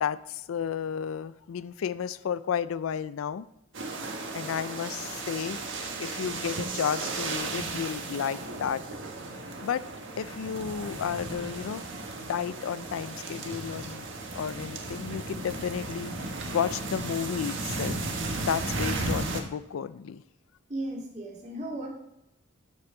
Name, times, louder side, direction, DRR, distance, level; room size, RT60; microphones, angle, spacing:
voice 1, 0.0-3.5 4.3-5.6 6.0-8.8 9.6-9.8 10.2-11.8 12.3-14.1 14.3-18.0 18.5-20.2, left 7 dB, 75° left, 16 dB, 0.4 m, -32 dB
sound 1, 3.7-19.4, right 2 dB, 60° right, 1.4 m, -35 dB
voice 2, 20.7-21.9, right 1 dB, 35° right, -2 dB, 2.1 m, -35 dB
12.5 x 5.5 x 3.8 m, 0.89 s
head